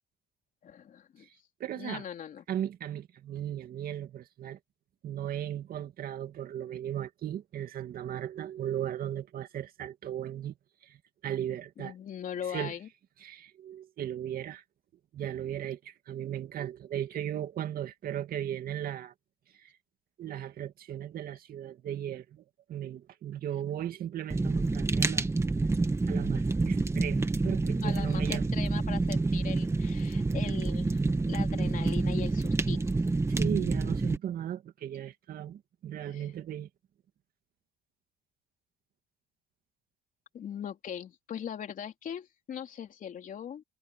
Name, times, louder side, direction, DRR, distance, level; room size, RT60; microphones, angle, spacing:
voice 1, 0.6-1.3 1.7-2.4 11.8-12.9 27.8-31.0 31.3-33.1 36.1-36.3 40.3-43.6, left 8 dB, 50° left, 3.6 m, -40 dB
voice 2, 1.6-2.0 2.5-4.6 5.0-10.5 10.8-11.0 11.2-11.9 12.5-12.7 13.2-14.6 15.1-19.1 19.6-19.7 20.2-22.4 22.7-25.3 26.1-28.4 33.3-36.7, right 10 dB, 55° right, 2.3 m, -36 dB
Fire, 24.3-34.2, right 3 dB, 15° right, 1.5 m, -28 dB
cardioid pair, 120°, 18 cm